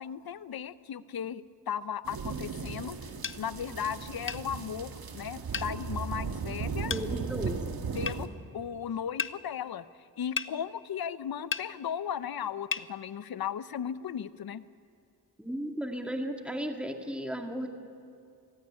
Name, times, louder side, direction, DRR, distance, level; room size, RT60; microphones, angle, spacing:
voice 1, 0.0-3.0 3.4-6.9 7.9-8.3 8.5-9.8 10.2-14.6, left 8 dB, 75° left, 15 dB, 0.8 m, -36 dB
sound 1, 2.0-8.3, right 5 dB, 75° right, 1.8 m, -36 dB
sound 2, 3.2-3.4 4.3-4.4 5.5-5.7 6.9-7.1 8.1-8.2 9.2-9.4 10.4-10.5 11.5-11.7 12.7-12.9, left 6 dB, 35° left, 0.7 m, -32 dB
voice 2, 6.8-7.6 15.4-17.7, equal, 5° right, 3 dB, 2.1 m, -35 dB
24.5 x 16.0 x 9.9 m, 2.4 s
cardioid pair, 75°, 36 cm